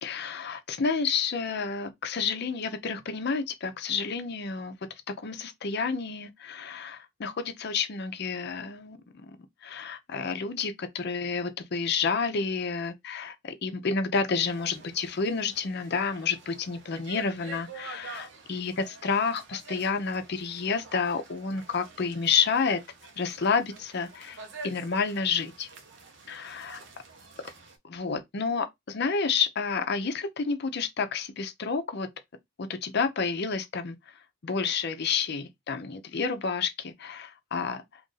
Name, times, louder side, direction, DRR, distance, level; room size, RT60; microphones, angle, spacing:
voice 1, 0.0-4.8 5.1-9.0 9.6-22.8 23.2-25.7 26.3-26.8 27.9-32.1 32.6-34.0 34.4-38.0, left 5 dB, 55° left, 0.6 m, -30 dB
sound 1, 14.4-27.8, right 4 dB, 65° right, 0.8 m, -48 dB
2.9 x 2.5 x 3.9 m
head